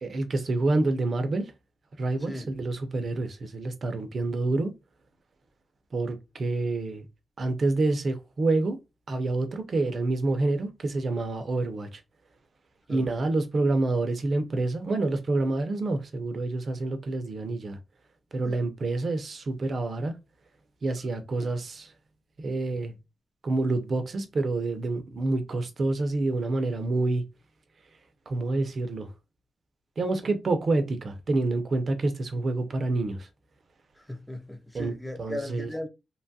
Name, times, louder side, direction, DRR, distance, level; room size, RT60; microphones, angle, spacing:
voice 1, 0.0-1.5 2.0-4.7 5.9-7.1 7.4-8.8 9.1-12.0 12.9-17.8 18.3-20.1 20.8-21.9 22.4-22.9 23.4-27.2 28.3-29.1 30.0-33.3 34.7-35.7, right 2 dB, 45° right, 0.5 m, -27 dB
voice 2, 34.1-35.9, left 1 dB, 5° left, 0.6 m, -36 dB
2.9 x 2.3 x 2.7 m
wide cardioid pair, 140°, 0 cm